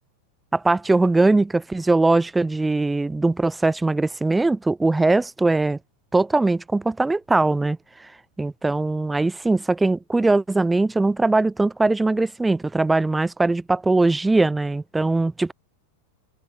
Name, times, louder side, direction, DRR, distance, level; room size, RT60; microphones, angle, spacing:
voice 1, 0.5-5.8 6.1-7.8 8.4-15.5, right 2 dB, 10° right, 5.9 m, -21 dB
figure-of-eight pair, 90°, 0 cm